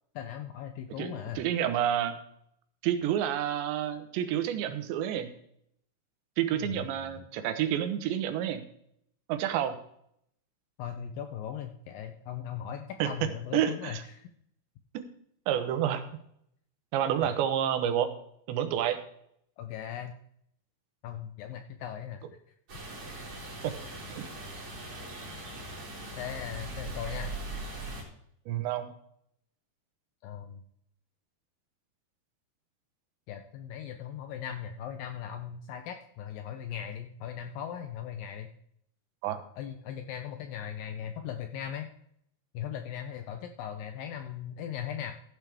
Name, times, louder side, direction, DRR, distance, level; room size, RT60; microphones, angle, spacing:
voice 1, 0.2-1.4 6.5-7.2 10.8-14.3 17.2-17.3 19.6-20.1 21.0-22.2 26.2-27.4 30.2-30.6 33.3-38.5 39.6-41.9 42.5-45.1, left 9 dB, 90° left, 6 dB, 1.9 m, -39 dB
voice 2, 1.0-2.2 2.8-5.3 6.4-8.6 9.3-9.8 13.0-13.1 13.5-14.0 14.9-15.0 15.5-16.0 16.9-18.1 18.5-19.0 23.6-23.7 24.2-24.3 28.5-28.9 39.2-39.4, right 10 dB, 80° right, 8 dB, 3.3 m, -29 dB
sound 1, 22.7-28.0, right 1 dB, 35° right, 4.3 m, -40 dB
15.0 x 9.3 x 3.5 m, 0.69 s
omnidirectional pair, 5.1 m